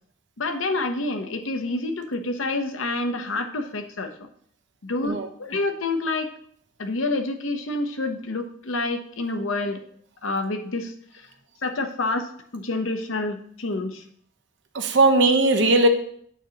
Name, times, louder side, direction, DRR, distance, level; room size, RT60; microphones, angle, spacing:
voice 1, 0.4-4.3 4.8-6.3 6.8-9.8 10.2-11.3 11.6-14.0, left 2 dB, 90° left, 6 dB, 0.9 m, -28 dB
voice 2, 14.7-15.9, right 2 dB, 65° right, 6 dB, 0.9 m, -18 dB
8.6 x 2.9 x 6.3 m, 0.63 s
head